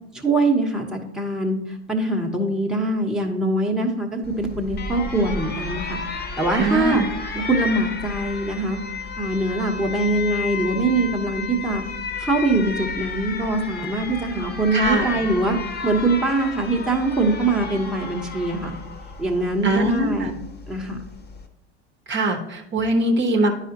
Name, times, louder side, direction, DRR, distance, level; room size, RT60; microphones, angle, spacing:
voice 1, 0.1-1.6 1.9-6.0 6.4-7.0 7.3-8.8 9.2-11.8 12.2-15.6 15.8-18.7 19.2-20.3 20.7-21.0, right 2 dB, ahead, 0 dB, 1.0 m, -23 dB
Alarm, 4.2-21.5, left 4 dB, 30° left, 0.9 m, -32 dB
voice 2, 6.5-7.0 14.7-15.2 19.6-20.3 22.1-23.5, right 1 dB, 35° right, 3 dB, 0.9 m, -22 dB
10.0 x 4.9 x 2.8 m, 0.84 s
hypercardioid pair, 85°, 34 cm